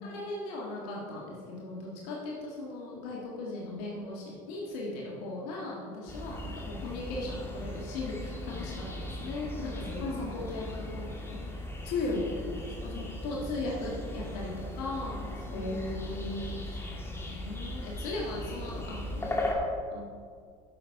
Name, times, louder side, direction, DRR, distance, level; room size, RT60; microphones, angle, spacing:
voice 1, 0.0-11.5 13.2-16.0 16.5-16.9 17.2-19.5 19.9-20.1, left 2 dB, 85° left, -3 dB, 1.7 m, -38 dB
sound 1, 6.1-19.5, left 1 dB, 15° left, 1.8 m, -38 dB
voice 2, 11.8-13.1 15.5-16.5, left 2 dB, 60° left, -1 dB, 2.1 m, -34 dB
9.8 x 6.7 x 4.6 m, 2.1 s
supercardioid pair, 90°, 19 cm